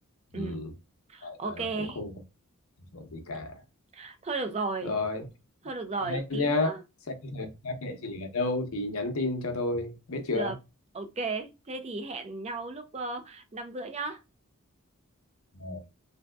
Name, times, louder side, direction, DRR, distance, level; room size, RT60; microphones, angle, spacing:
voice 1, 0.3-0.7 1.2-2.1 2.9-3.6 4.8-5.3 6.0-6.8 7.1-10.5 15.5-15.8, left 2 dB, 80° left, 0.8 m, -32 dB
voice 2, 1.1-2.0 3.9-4.9 5.6-6.8 10.3-10.6 10.9-14.2, right 3 dB, 30° right, 0.5 m, -35 dB
3.4 x 2.6 x 2.2 m
head